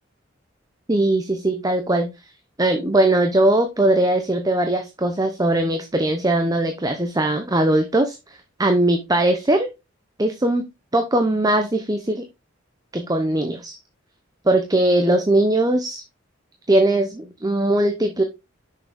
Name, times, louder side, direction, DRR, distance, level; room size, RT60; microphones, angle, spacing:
voice 1, 0.9-2.1 2.6-8.2 8.6-9.7 10.2-10.6 10.9-12.2 12.9-13.8 14.4-16.0 16.7-18.2, right 1 dB, 20° right, 6 dB, 0.8 m, -20 dB
6.5 x 5.9 x 3.5 m, 0.24 s
head